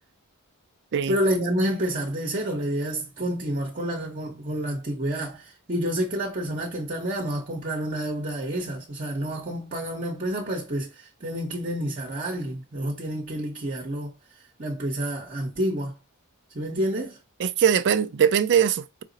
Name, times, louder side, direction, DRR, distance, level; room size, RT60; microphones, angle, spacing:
voice 1, 1.1-14.1 14.6-15.9 16.5-17.2, right 1 dB, 40° right, 0.9 m, -29 dB
voice 2, 17.4-19.0, right 8 dB, 55° right, 0.4 m, -21 dB
4.9 x 2.0 x 3.9 m
head